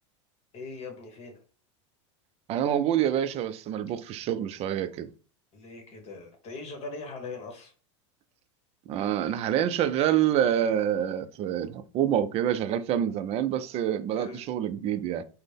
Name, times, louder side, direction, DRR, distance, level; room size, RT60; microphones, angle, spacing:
voice 1, 0.5-1.4 5.5-7.7 14.1-14.4, left 3 dB, 40° left, 1.3 m, -40 dB
voice 2, 2.5-5.1 8.9-15.2, right 10 dB, 40° right, 0.4 m, -27 dB
4.0 x 2.1 x 3.3 m
hypercardioid pair, 105°, 16 cm